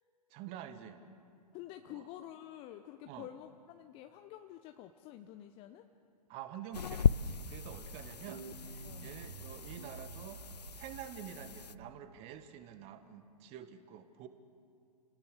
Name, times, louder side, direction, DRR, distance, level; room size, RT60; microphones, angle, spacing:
voice 1, 0.3-1.0 1.9-2.0 3.1-3.3 6.3-10.4 10.7-14.3, right 9 dB, 30° right, 10 dB, 1.6 m, -48 dB
voice 2, 1.5-5.9 8.8-9.1, left 12 dB, 25° left, 7 dB, 0.9 m, -49 dB
sound 1, 6.7-11.7, left 6 dB, 75° left, 0.6 m, -36 dB
sound 2, 7.6-12.2, right 4 dB, 70° right, 1.6 m, -50 dB
29.5 x 18.5 x 6.7 m, 2.4 s
figure-of-eight pair, 110°, 21 cm